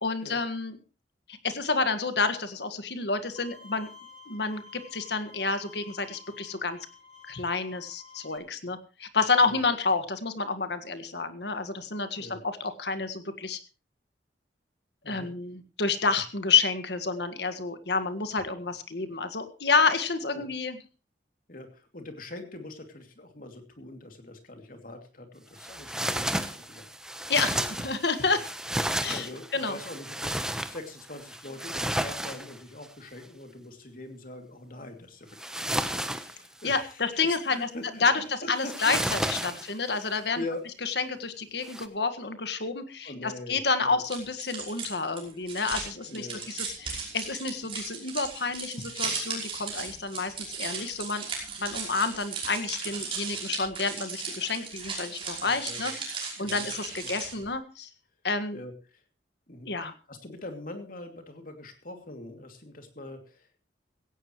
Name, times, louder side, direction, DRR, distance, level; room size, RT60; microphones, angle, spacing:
voice 1, 0.0-0.8 1.3-3.9 4.3-6.8 7.3-13.6 15.0-20.8 27.3-28.4 29.0-29.3 29.5-29.8 36.6-37.7 38.0-40.4 40.8-51.3 51.6-57.9 58.2-58.6 59.6-59.9, left 4 dB, 70° left, 10 dB, 1.7 m, -29 dB
Bowed string instrument, 3.4-8.4, left 5 dB, 30° left, 2.4 m, -51 dB
voice 2, 21.5-27.7 28.3-28.4 29.1-39.0 39.4-39.8 40.3-40.6 43.0-44.0 46.0-46.5 55.4-55.9 56.4-56.7 57.3-57.5 58.5-59.0 59.5-59.7 60.1-63.6, left 2 dB, 50° left, 5 dB, 2.7 m, -43 dB
sound 1, 25.6-32.9 35.4-36.9 38.6-40.0 41.6-41.9, right 1 dB, 5° right, 0.9 m, -32 dB
sound 2, 44.0-57.5, right 5 dB, 30° right, 5.5 m, -36 dB
17.0 x 16.0 x 3.1 m, 0.33 s
head